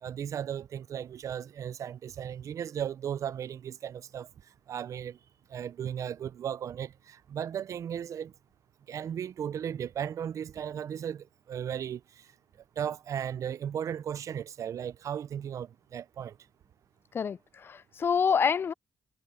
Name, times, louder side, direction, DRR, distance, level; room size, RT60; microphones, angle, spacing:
voice 1, 0.0-4.3 4.7-5.2 5.5-8.3 8.9-12.3 12.8-16.4, right 9 dB, 60° right, 0.4 m, -36 dB
voice 2, 17.1-18.7, left 6 dB, 40° left, 0.3 m, -27 dB
cardioid pair, 120°, 6 cm